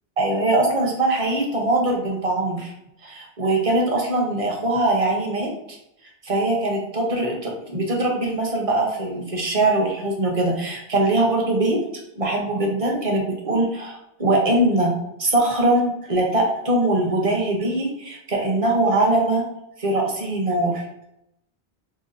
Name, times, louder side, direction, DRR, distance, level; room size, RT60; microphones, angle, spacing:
voice 1, 0.2-2.7 3.0-5.8 6.2-11.8 12.2-19.4 19.8-20.8, right 2 dB, 35° right, 0 dB, 0.7 m, -22 dB
4.8 x 2.4 x 2.5 m, 0.82 s
omnidirectional pair, 1.2 m